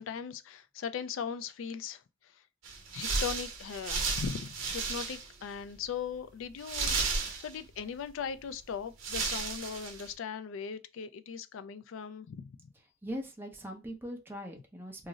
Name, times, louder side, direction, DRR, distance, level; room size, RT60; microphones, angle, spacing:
voice 1, 0.0-2.4 2.9-12.7, left 7 dB, 75° left, 0.3 m, -39 dB
sound 1, 2.6-5.4 5.7-5.8 6.6-7.8 8.6-8.7 9.0-10.1, right 4 dB, 75° right, 0.7 m, -33 dB
voice 2, 13.0-15.1, equal, 10° right, 0.5 m, -41 dB
2.4 x 2.0 x 3.7 m
head